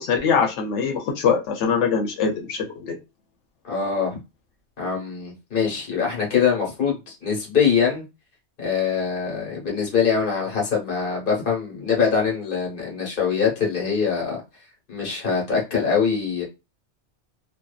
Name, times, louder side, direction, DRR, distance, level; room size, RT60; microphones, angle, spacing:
voice 1, 0.0-3.0, left 6 dB, 90° left, 0.9 m, -23 dB
voice 2, 3.6-4.2 4.8-8.0 8.6-14.4 14.9-16.4, left 6 dB, 50° left, 1.2 m, -23 dB
2.6 x 2.2 x 2.2 m
omnidirectional pair, 1.2 m